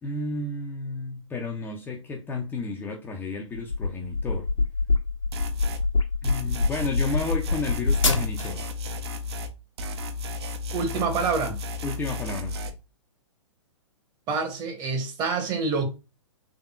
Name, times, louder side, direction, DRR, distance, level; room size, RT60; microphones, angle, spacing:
voice 1, 0.0-4.5 6.2-8.6 11.8-12.5, left 3 dB, 10° left, 0.5 m, -32 dB
sound 1, 3.5-8.7, left 3 dB, 90° left, 1.1 m, -25 dB
sound 2, 5.3-5.8 6.2-9.5 9.8-12.7, left 3 dB, 55° right, 0.7 m, -33 dB
voice 2, 10.7-11.6 14.3-15.9, right 4 dB, 25° right, 1.0 m, -27 dB
3.8 x 3.5 x 2.3 m
figure-of-eight pair, 115°, 16 cm